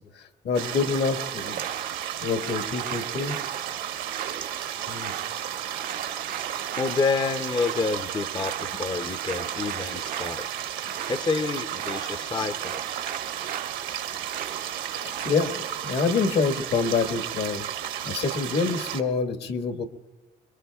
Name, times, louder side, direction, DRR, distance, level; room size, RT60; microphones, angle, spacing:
voice 1, 0.0-1.6 2.2-3.7 4.9-5.1 14.9-19.8, left 4 dB, 65° left, 6 dB, 1.5 m, -27 dB
sound 1, 0.5-19.0, right 10 dB, 85° right, 1.1 m, -33 dB
sound 2, 1.2-15.3, right 10 dB, 50° right, 0.5 m, -39 dB
voice 2, 6.8-10.5 11.1-12.8, left 4 dB, 25° left, 9 dB, 0.5 m, -28 dB
27.5 x 22.0 x 2.3 m, 1.1 s
cardioid pair, 90°, 18 cm